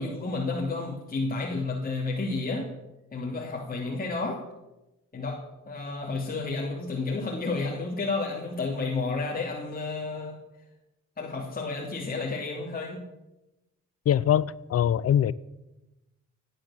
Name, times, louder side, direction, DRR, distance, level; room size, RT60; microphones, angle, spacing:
voice 1, 0.0-2.7 3.1-4.4 5.1-5.4 5.7-10.4 11.2-13.1, left 3 dB, 30° left, -2 dB, 2.9 m, -31 dB
voice 2, 14.1-15.3, left 10 dB, 50° left, 20 dB, 0.7 m, -23 dB
16.5 x 10.0 x 7.4 m, 0.98 s
cardioid pair, 90°, 30 cm